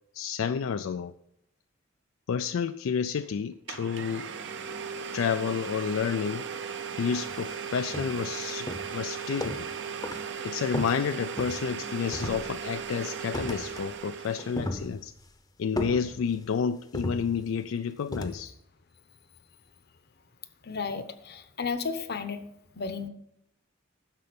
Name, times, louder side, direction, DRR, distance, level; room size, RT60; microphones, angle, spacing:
voice 1, 0.1-1.1 2.3-4.3 5.1-6.5 6.9-9.7 10.4-15.1 15.6-18.5, left 6 dB, 75° left, 10 dB, 0.4 m, -30 dB
Domestic sounds home sounds, 3.2-3.3 3.7-14.7, right 7 dB, 60° right, 0.7 m, -37 dB
sound 1, 7.3-7.5 7.9-8.3 8.7-9.8 10.0-10.3 10.7-11.8 12.1-12.8 13.3-13.9 14.2-15.3 15.8-16.5 16.9-17.7 18.1-18.5, left 1 dB, 20° left, 0.7 m, -36 dB
voice 2, 20.6-22.4 22.7-23.1, left 5 dB, 50° left, 10 dB, 0.9 m, -33 dB
10.5 x 6.8 x 5.2 m, 0.77 s
head